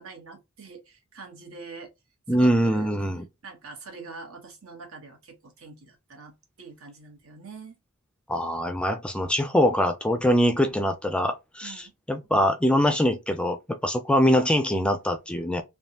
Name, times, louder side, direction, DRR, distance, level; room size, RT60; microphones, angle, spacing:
voice 1, 0.0-1.9 2.3-2.9 3.4-7.8 11.6-11.9, right 4 dB, 80° right, 1.3 m, -44 dB
voice 2, 2.3-3.2 8.3-13.6 13.8-15.6, equal, 5° left, 0.4 m, -23 dB
3.4 x 2.2 x 2.7 m
head